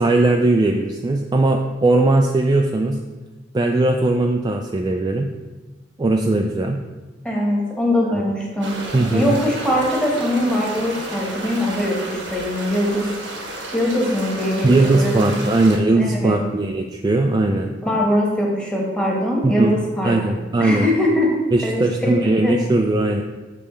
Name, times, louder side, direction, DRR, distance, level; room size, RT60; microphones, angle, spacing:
voice 1, 0.0-3.0 3.5-5.3 6.0-6.8 8.1-8.2 8.9-9.4 14.6-17.7 19.4-19.7 20.0-20.9 21.5-23.2, right 2 dB, 20° right, 2 dB, 0.3 m, -19 dB
voice 2, 7.2-8.8 9.1-13.1 13.7-15.4 15.9-16.4 17.8-21.3 21.6-22.2 22.4-22.6, left 1 dB, 5° left, -3 dB, 1.2 m, -22 dB
sound 1, 8.6-15.8, right 1 dB, 85° right, 1.2 m, -32 dB
7.1 x 3.3 x 5.0 m, 1.2 s
head